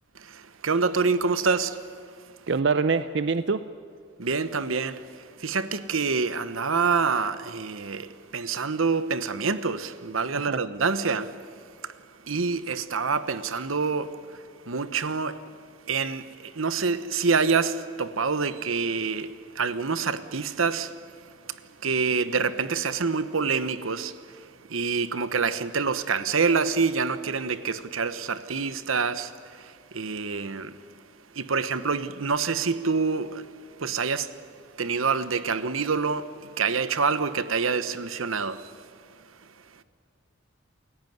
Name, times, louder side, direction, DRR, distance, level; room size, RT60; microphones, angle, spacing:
voice 1, 0.1-1.9 4.2-11.9 12.2-15.6 15.9-30.8 31.3-33.5 33.8-34.4 34.8-38.8, right 5 dB, 85° right, 1.1 m, -27 dB
voice 2, 2.5-3.6 10.3-10.6, right 4 dB, 60° right, 0.6 m, -25 dB
29.0 x 16.5 x 9.4 m
head